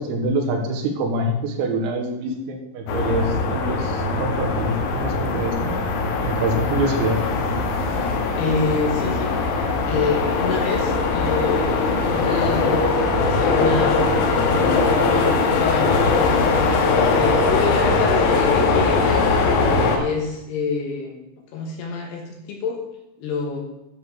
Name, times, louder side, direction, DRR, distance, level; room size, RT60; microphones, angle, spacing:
voice 1, 0.0-5.7 6.2-7.2, right 1 dB, 85° right, 2 dB, 4.1 m, -25 dB
sound 1, 2.9-20.0, left 3 dB, 85° left, 4.0 m, -20 dB
voice 2, 8.3-9.3 9.9-11.8 12.1-13.0 13.3-16.3 17.1-19.6 20.0-21.2 21.5-22.8 23.2-23.6, left 4 dB, 70° left, 2 dB, 2.8 m, -27 dB
11.0 x 5.0 x 7.0 m, 0.95 s
omnidirectional pair, 5.9 m